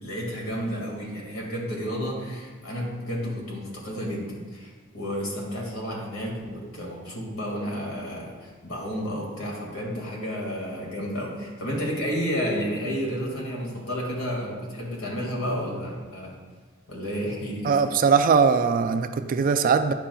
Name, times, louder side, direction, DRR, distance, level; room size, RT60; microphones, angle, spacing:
voice 1, 0.0-16.3 16.9-17.8, equal, 80° left, -3 dB, 2.0 m, -31 dB
voice 2, 17.6-19.9, right 5 dB, 40° right, 8 dB, 0.3 m, -20 dB
10.0 x 5.8 x 2.3 m, 1.4 s
head